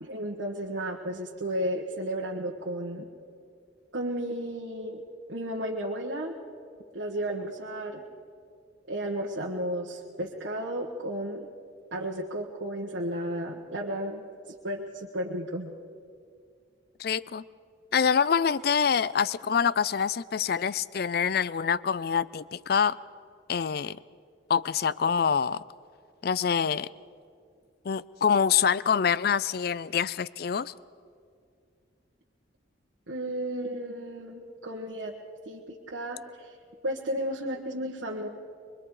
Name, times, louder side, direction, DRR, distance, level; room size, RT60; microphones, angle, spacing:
voice 1, 0.0-3.1 3.9-5.0 5.3-6.3 6.9-8.0 8.9-11.5 11.9-14.2 14.6-15.7 33.1-35.1 35.5-36.5 36.8-38.3, right 1 dB, 85° right, -2 dB, 1.5 m, -33 dB
voice 2, 17.0-17.4 17.9-23.0 23.5-24.0 24.5-25.6 26.2-26.9 27.9-30.7, left 7 dB, 55° left, 19 dB, 0.4 m, -25 dB
23.5 x 23.5 x 4.9 m, 2.3 s
head